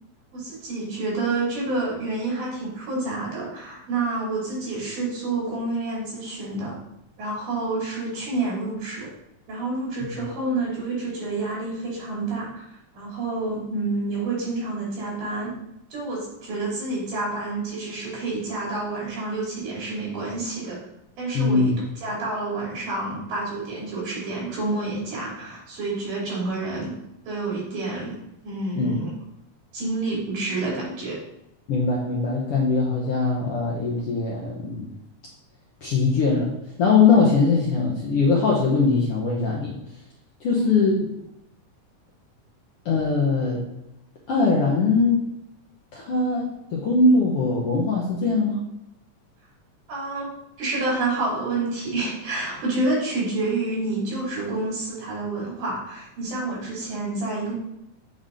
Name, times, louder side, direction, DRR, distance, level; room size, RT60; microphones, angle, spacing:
voice 1, 0.3-6.8 7.2-9.1 9.5-12.7 12.9-15.5 15.9-20.8 21.2-21.7 22.0-26.9 27.2-28.2 28.4-29.1 29.7-31.2 40.5-40.7 49.9-50.3 50.6-57.5, right 2 dB, 70° right, -5 dB, 4.0 m, -28 dB
voice 2, 21.3-21.7 28.8-29.0 31.7-34.9 35.8-39.8 40.4-41.1 42.8-43.6 44.3-45.2 45.9-48.6, left 4 dB, 65° left, -4 dB, 1.5 m, -21 dB
7.9 x 4.0 x 3.7 m, 0.85 s
omnidirectional pair, 3.7 m